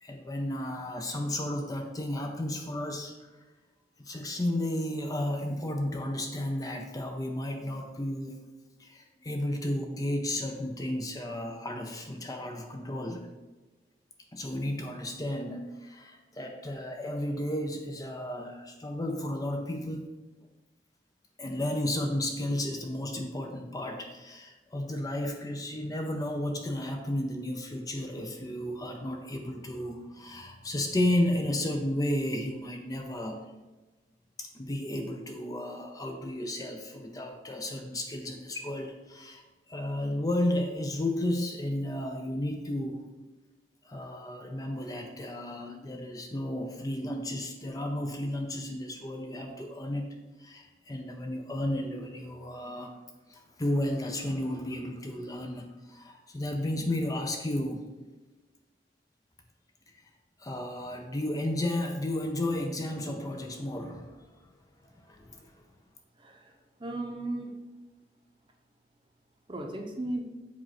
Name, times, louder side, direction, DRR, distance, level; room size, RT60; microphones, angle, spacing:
voice 1, 0.0-3.3 4.0-8.4 8.8-13.3 14.3-20.1 21.4-33.4 34.4-39.4 39.7-43.0 43.8-50.0 50.4-53.0 53.3-57.9 59.9-60.0 60.4-64.5 64.8-65.5, left 1 dB, 20° left, 3 dB, 0.5 m, -33 dB
voice 2, 66.2-67.5 69.5-70.2, right 2 dB, 30° right, 2 dB, 0.8 m, -36 dB
7.5 x 2.5 x 5.7 m, 1.2 s
head